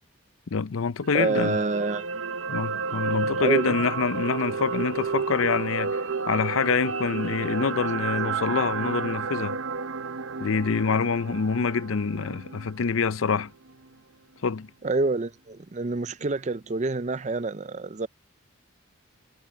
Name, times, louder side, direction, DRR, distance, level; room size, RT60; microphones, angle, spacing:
voice 1, 0.5-1.6 2.5-9.6 10.4-13.5 14.4-14.7, left 5 dB, 75° left, 0.6 m, -26 dB
sound 1, 1.0-13.3 13.7-13.8, right 5 dB, 70° right, 0.7 m, -31 dB
voice 2, 1.1-2.1 3.4-3.8 14.8-18.1, right 3 dB, 35° right, 0.5 m, -27 dB
head